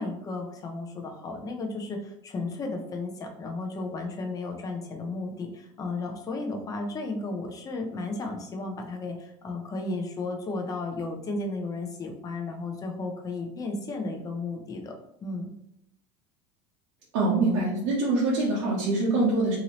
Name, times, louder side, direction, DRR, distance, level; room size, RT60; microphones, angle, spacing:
voice 1, 0.0-15.5, left 3 dB, 20° left, 2 dB, 0.5 m, -34 dB
voice 2, 17.1-19.6, right 2 dB, 75° right, -7 dB, 0.9 m, -24 dB
2.9 x 2.6 x 2.9 m, 0.78 s
supercardioid pair, 135°, 16 cm